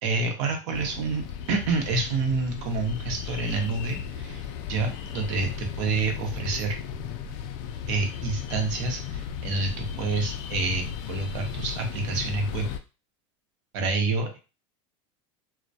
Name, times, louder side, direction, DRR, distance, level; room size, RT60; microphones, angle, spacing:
voice 1, 0.0-1.2 1.5-6.8 7.9-12.7 13.7-14.4, right 3 dB, 65° right, 4 dB, 0.8 m, -28 dB
sound 1, 0.7-12.8, left 8 dB, 55° left, 0.4 m, -35 dB
2.2 x 2.1 x 2.6 m, 0.31 s
hypercardioid pair, 105°, 16 cm